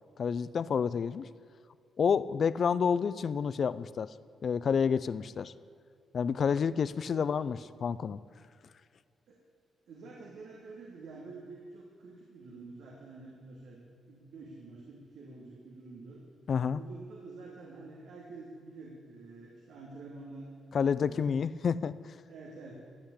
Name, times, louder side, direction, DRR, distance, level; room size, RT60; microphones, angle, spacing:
voice 1, 0.2-1.3 2.0-4.1 4.4-5.5 6.1-8.2 16.5-16.8 20.7-22.2, left 6 dB, 50° left, 16 dB, 0.4 m, -29 dB
voice 2, 9.9-16.2 16.7-20.5 20.8-21.2 22.3-22.7, right 3 dB, 80° right, -3 dB, 2.7 m, -48 dB
15.5 x 8.2 x 8.7 m, 2.4 s
cardioid pair, 110°, 0 cm